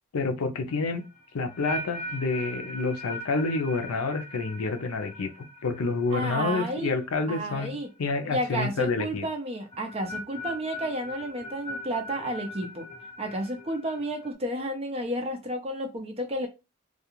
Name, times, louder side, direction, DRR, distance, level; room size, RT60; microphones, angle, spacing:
voice 1, 0.1-1.0 1.3-5.3 5.6-9.3, left 3 dB, 80° left, 0.5 m, -28 dB
sound 1, 0.7-7.8 8.1-8.5 9.7-14.3, left 1 dB, 20° left, 1.2 m, -40 dB
voice 2, 6.1-6.9 7.3-7.9 8.3-12.9 13.2-16.5, right 1 dB, 25° right, 0.6 m, -31 dB
2.3 x 2.3 x 3.0 m
head